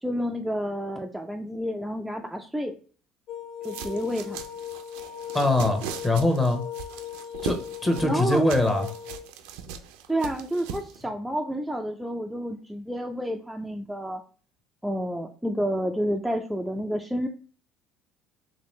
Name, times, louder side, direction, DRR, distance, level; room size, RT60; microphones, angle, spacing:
voice 1, 0.0-2.8 3.6-4.4 8.0-8.4 10.1-14.2 14.8-17.3, equal, 5° right, 2 dB, 0.4 m, -29 dB
sound 1, 3.3-9.2, left 10 dB, 50° left, 0.5 m, -38 dB
sound 2, 3.6-11.0, right 7 dB, 80° right, 0.4 m, -39 dB
voice 2, 5.3-6.6 7.4-7.6 7.8-8.9, left 2 dB, 20° left, 5 dB, 0.9 m, -22 dB
3.1 x 2.8 x 3.1 m, 0.41 s
supercardioid pair, 80°, 0 cm